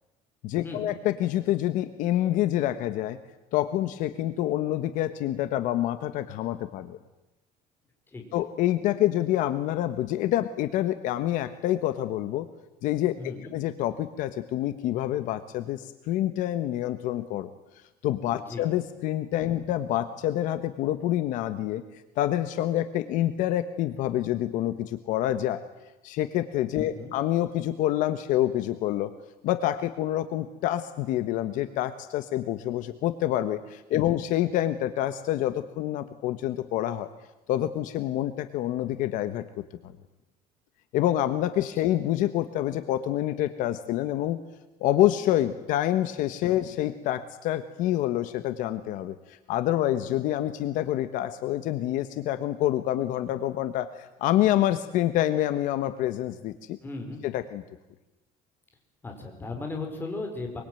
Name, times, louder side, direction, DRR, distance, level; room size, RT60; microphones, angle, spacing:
voice 1, 0.4-3.2 3.5-7.0 8.3-12.5 12.8-17.5 18.0-21.8 22.2-25.6 26.0-29.1 29.4-37.1 37.5-39.4 39.8-39.9 40.9-44.4 44.8-56.8 57.2-57.6, left 13 dB, 65° left, 11 dB, 1.3 m, -27 dB
voice 2, 13.2-13.5 18.3-18.7 26.8-27.1 33.9-34.2 56.8-57.2 59.0-60.6, left 3 dB, 15° left, 3 dB, 4.9 m, -36 dB
24.0 x 24.0 x 9.2 m, 0.99 s
cardioid pair, 170°, 15 cm